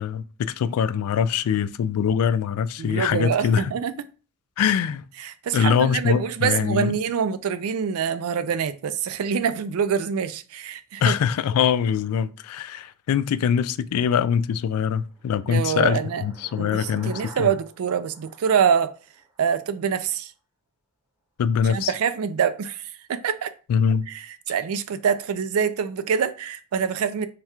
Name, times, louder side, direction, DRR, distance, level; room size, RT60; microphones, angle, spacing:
voice 1, 0.0-3.7 4.6-5.0 5.5-7.0 11.0-17.5 21.4-21.9 23.7-24.1, left 7 dB, 90° left, 0.3 m, -23 dB
voice 2, 2.8-3.9 5.2-11.2 15.5-16.2 16.6-18.9 19.4-20.3 21.7-23.5 24.1-27.3, right 7 dB, 75° right, 0.4 m, -25 dB
sound 1, 14.6-19.4, right 2 dB, 15° right, 0.7 m, -48 dB
3.3 x 2.3 x 4.3 m
head